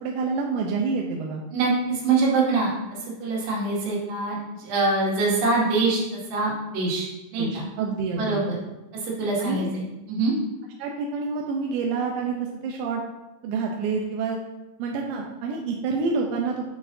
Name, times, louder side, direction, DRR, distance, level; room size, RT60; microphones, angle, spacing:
voice 1, 0.0-1.4 7.4-8.4 9.4-9.7 10.8-12.4 12.6-13.0 13.4-14.4 14.8-16.6, right 4 dB, 80° right, 0 dB, 2.8 m, -27 dB
voice 2, 1.5-2.7 3.2-7.1 7.3-7.6 8.2-8.6 9.0-10.4, right 3 dB, 60° right, -5 dB, 4.0 m, -24 dB
9.2 x 8.5 x 2.7 m, 1.1 s
omnidirectional pair, 5.8 m